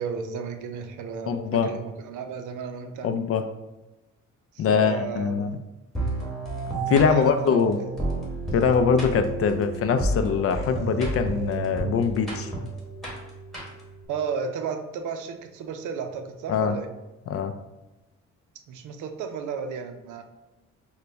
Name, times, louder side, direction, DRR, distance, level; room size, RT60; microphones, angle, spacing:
voice 1, 0.0-1.4 1.6-3.1 4.5-5.5 6.9-7.9 14.1-16.9 18.7-20.2, right 6 dB, 80° right, 6 dB, 0.5 m, -33 dB
voice 2, 1.3-1.7 3.0-3.4 4.6-5.6 6.9-7.8 8.5-12.5 16.5-16.8 17.3-17.5, left 6 dB, 50° left, 8 dB, 0.4 m, -23 dB
sound 1, 5.9-14.0, right 2 dB, ahead, 1.3 m, -31 dB
3.9 x 2.2 x 3.4 m, 1.1 s
cardioid pair, 90°, 30 cm